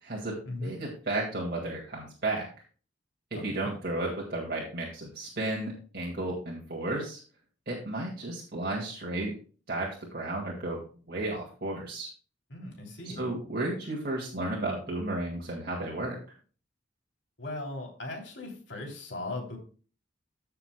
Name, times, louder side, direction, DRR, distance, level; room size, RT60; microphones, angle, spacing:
voice 1, 0.0-2.5 3.3-7.2 7.7-9.3 9.7-10.8 11.1-12.1 13.0-16.2, right 2 dB, 55° right, -3 dB, 2.0 m, -33 dB
voice 2, 3.3-3.7 12.5-13.3 17.4-19.6, left 2 dB, 70° left, 1 dB, 3.0 m, -38 dB
14.5 x 6.8 x 2.2 m, 0.39 s
head